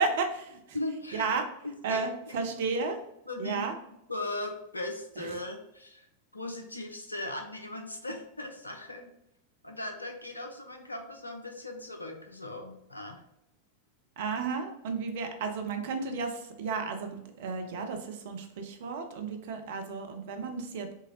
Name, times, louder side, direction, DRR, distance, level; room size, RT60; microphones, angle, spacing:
voice 1, 0.0-0.6 1.1-1.4 1.8-3.0 3.4-3.7 5.2-5.3 14.2-20.9, right 4 dB, 55° right, 5 dB, 0.6 m, -32 dB
voice 2, 0.7-1.2 1.9-2.4 3.3-3.7 4.1-6.1 6.3-9.1 9.6-13.2, left 2 dB, 80° left, 4 dB, 0.5 m, -38 dB
3.6 x 2.8 x 3.0 m, 0.81 s
figure-of-eight pair, 90°, 0 cm